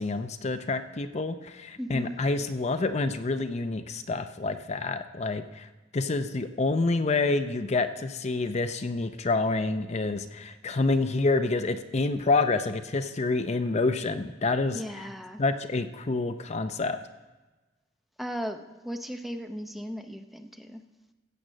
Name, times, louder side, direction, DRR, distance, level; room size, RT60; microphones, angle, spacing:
voice 1, 0.0-15.1 15.4-17.0, left 3 dB, 40° left, 8 dB, 0.6 m, -28 dB
voice 2, 1.8-2.2 14.7-15.4 18.2-20.8, equal, ahead, 6 dB, 0.6 m, -36 dB
15.0 x 8.0 x 6.2 m, 1.2 s
head